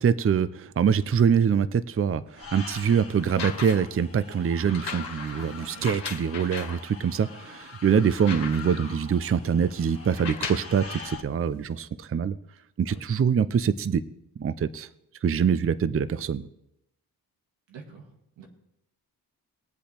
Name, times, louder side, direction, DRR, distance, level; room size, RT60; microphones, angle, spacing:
voice 1, 0.0-12.3 12.8-14.0 14.4-14.9 15.2-16.5, right 7 dB, 30° right, 15 dB, 0.5 m, -24 dB
sound 1, 2.3-11.2, left 4 dB, 35° left, 1.6 m, -44 dB
sound 2, 3.2-4.0 4.7-6.8 7.4-7.5 7.8-8.9 10.1-10.8 11.7-11.8, left 6 dB, 65° left, 1.8 m, -37 dB
voice 2, 5.3-5.9 7.2-7.4 12.9-13.3 17.7-18.5, right 5 dB, 90° right, 2 dB, 1.9 m, -48 dB
20.5 x 7.8 x 3.4 m, 0.81 s
cardioid pair, 55°, 42 cm